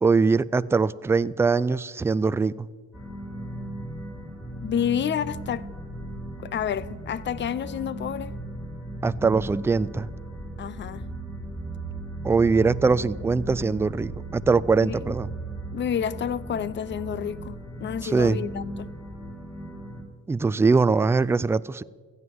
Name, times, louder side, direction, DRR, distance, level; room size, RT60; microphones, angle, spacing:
voice 1, 0.0-2.7 9.0-10.1 12.2-15.3 18.0-18.4 20.3-21.8, right 4 dB, 10° right, 0.3 m, -22 dB
sound 1, 2.9-20.0, right 1 dB, 5° left, 4.5 m, -37 dB
voice 2, 4.6-5.7 6.4-8.3 10.6-11.1 14.8-15.1 15.7-18.9, left 9 dB, 40° left, 0.6 m, -29 dB
15.5 x 8.1 x 7.7 m
supercardioid pair, 85°, 29 cm